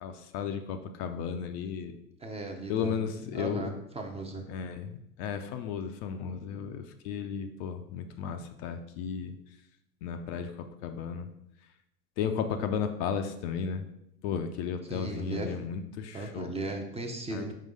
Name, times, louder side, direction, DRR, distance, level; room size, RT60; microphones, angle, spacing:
voice 1, 0.0-2.0 2.7-3.7 4.5-9.4 10.0-11.3 12.2-13.9 14.2-16.5 17.3-17.4, left 7 dB, 45° left, 7 dB, 0.6 m, -34 dB
voice 2, 2.2-3.0 3.3-4.4 14.9-15.5 16.1-17.5, right 2 dB, 15° right, 3 dB, 0.7 m, -36 dB
5.6 x 5.0 x 3.7 m, 0.82 s
figure-of-eight pair, 80°, 49 cm